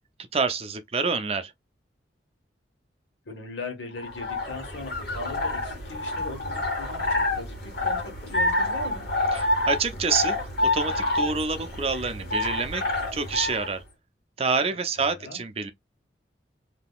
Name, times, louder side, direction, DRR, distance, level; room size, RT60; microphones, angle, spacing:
voice 1, 0.3-1.5 9.3-10.4 10.7-12.8 13.1-13.8 14.4-15.7, right 5 dB, 35° right, 0.5 m, -27 dB
voice 2, 3.3-9.0 15.0-15.4, left 2 dB, 90° left, 1.3 m, -39 dB
sound 1, 4.0-13.7, left 2 dB, 60° left, 1.8 m, -28 dB
3.7 x 2.8 x 2.3 m
head